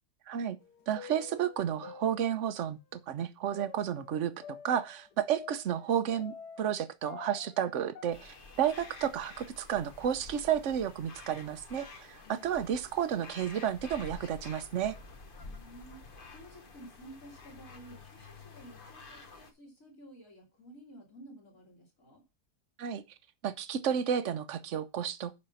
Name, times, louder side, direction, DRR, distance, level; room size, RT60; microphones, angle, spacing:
voice 1, 0.3-0.6 0.9-2.8 3.1-4.3 4.6-14.9 22.8-23.0 23.4-25.4, right 9 dB, 55° right, 1.0 m, -32 dB
sound 1, 0.6-2.8 3.5-6.8 7.1-9.4 9.7-9.8 10.6-10.7 11.4-11.6 12.3-12.4 13.2-13.5, left 7 dB, 85° left, 1.5 m, -50 dB
sound 2, 8.1-19.5, left 3 dB, 40° left, 1.1 m, -50 dB
voice 2, 15.4-22.2, right 1 dB, 55° left, 3.4 m, -53 dB
10.5 x 4.4 x 5.6 m
omnidirectional pair, 1.7 m